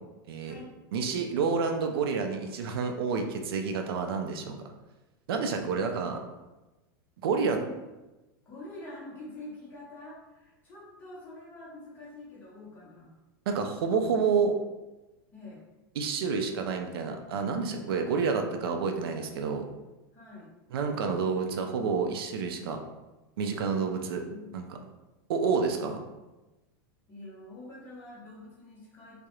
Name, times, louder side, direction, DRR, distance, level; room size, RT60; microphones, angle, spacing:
voice 1, 0.9-4.7 5.3-6.2 7.2-7.6 13.5-14.5 16.0-19.6 20.7-22.8 23.4-24.2 24.5-24.6 25.3-26.0, right 5 dB, 85° right, 4 dB, 0.4 m, -29 dB
voice 2, 7.4-7.7 8.4-13.2 15.3-15.6 17.9-18.0 20.1-20.5 23.7-24.6 27.1-29.3, left 2 dB, 15° left, -7 dB, 0.7 m, -46 dB
2.3 x 2.0 x 2.9 m, 1.1 s
supercardioid pair, 165°, 12 cm